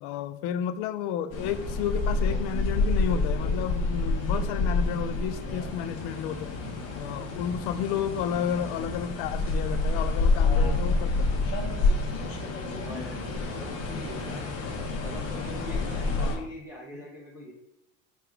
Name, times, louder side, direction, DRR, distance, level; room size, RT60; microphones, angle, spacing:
voice 1, 0.0-6.6 7.0-11.3 16.2-16.5, left 9 dB, 60° left, 11 dB, 0.4 m, -32 dB
sound 1, 1.3-16.4, left 3 dB, 40° left, 0.9 m, -28 dB
voice 2, 12.6-14.4 15.0-17.5, left 1 dB, 5° right, -5 dB, 0.5 m, -42 dB
3.4 x 2.4 x 4.4 m, 0.91 s
supercardioid pair, 125°, 38 cm